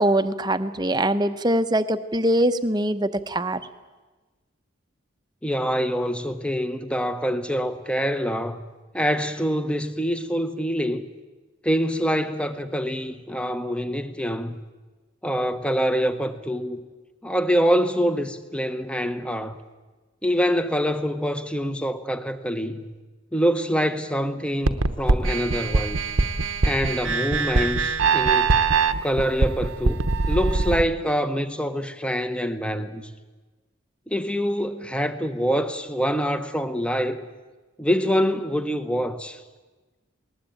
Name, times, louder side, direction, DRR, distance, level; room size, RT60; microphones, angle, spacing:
voice 1, 0.0-3.6, right 1 dB, 20° right, 0.8 m, -22 dB
voice 2, 5.4-8.6 8.9-11.1 11.6-14.5 15.2-16.8 17.2-19.6 20.2-22.9 23.3-26.0 26.6-28.5 29.0-33.1 34.1-37.3 37.8-39.4, equal, 5° left, 1.0 m, -25 dB
sound 1, 24.7-30.8, right 3 dB, 80° right, 1.0 m, -22 dB
20.5 x 19.5 x 9.1 m
head